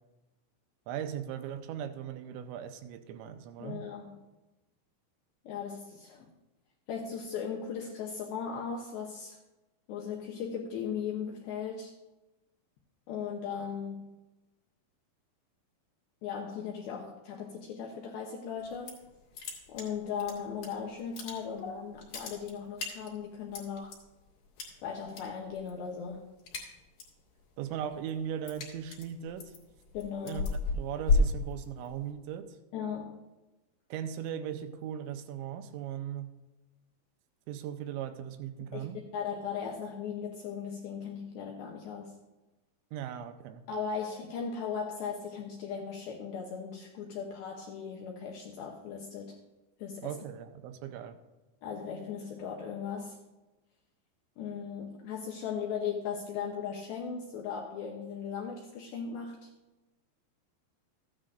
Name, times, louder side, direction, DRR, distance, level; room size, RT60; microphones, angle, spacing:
voice 1, 0.9-3.8 27.6-29.5 30.2-32.6 33.9-36.3 37.5-39.0 42.9-43.6 50.0-51.2, right 9 dB, 90° right, 8 dB, 3.0 m, -38 dB
voice 2, 3.6-4.2 5.4-6.3 6.9-9.4 9.9-12.0 13.1-14.2 16.2-19.0 19.7-24.0 24.8-26.3 29.9-30.5 32.7-33.3 38.7-42.2 43.7-49.4 49.8-50.2 51.6-53.2 54.4-59.5, left 6 dB, 80° left, 0 dB, 2.2 m, -38 dB
sound 1, 18.6-19.1 19.3-20.7 21.0-21.7 22.0-24.0 24.6-25.2 25.5-25.8 26.1-27.2 27.6-32.1, left 3 dB, 55° left, 3.1 m, -32 dB
14.5 x 9.9 x 2.5 m, 1.1 s
omnidirectional pair, 5.3 m